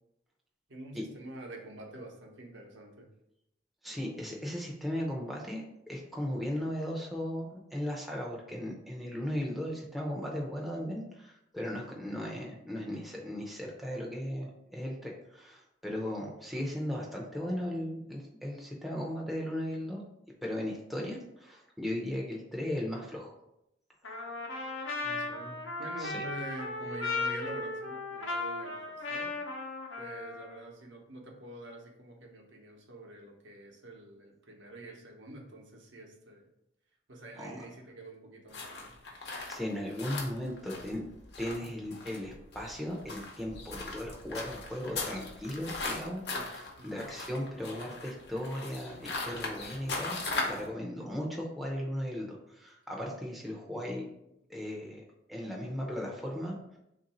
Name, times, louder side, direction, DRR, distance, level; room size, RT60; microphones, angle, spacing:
voice 1, 0.7-3.1 25.0-29.4 30.0-36.5 37.1-39.0 46.3-46.4 46.8-47.0 50.8-51.1, right 1 dB, 75° right, 0 dB, 0.8 m, -46 dB
voice 2, 3.8-20.0 20.4-23.3 26.0-26.2 28.3-28.4 37.4-37.5 39.2-41.0 41.4-50.2 50.5-54.1 54.5-55.0 55.3-56.8, equal, ahead, -3 dB, 0.5 m, -37 dB
Trumpet, 24.0-30.7, left 3 dB, 85° left, 0.8 m, -36 dB
sound 1, 38.5-50.7, left 3 dB, 55° left, 0.8 m, -39 dB
3.4 x 2.6 x 4.1 m, 0.82 s
head